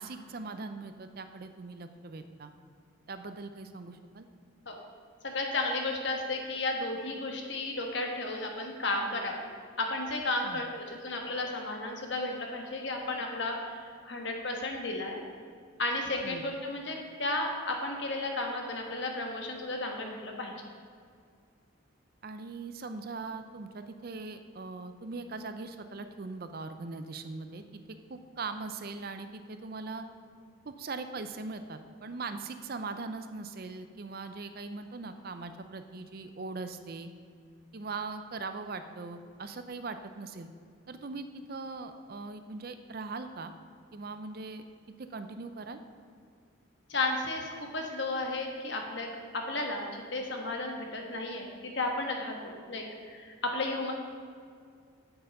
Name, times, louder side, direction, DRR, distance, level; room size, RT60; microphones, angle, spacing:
voice 1, 0.0-2.5 3.1-4.3 10.4-10.6 16.2-16.4 22.2-27.8 28.1-30.0 30.6-37.1 37.7-40.5 40.9-43.5 43.9-44.6 45.0-45.8, right 3 dB, 45° right, 9 dB, 0.5 m, -40 dB
voice 2, 5.2-9.4 9.8-15.2 15.8-20.5 46.9-49.1 49.3-53.9, left 2 dB, 55° left, 2 dB, 1.3 m, -33 dB
8.0 x 7.9 x 5.3 m, 2.2 s
head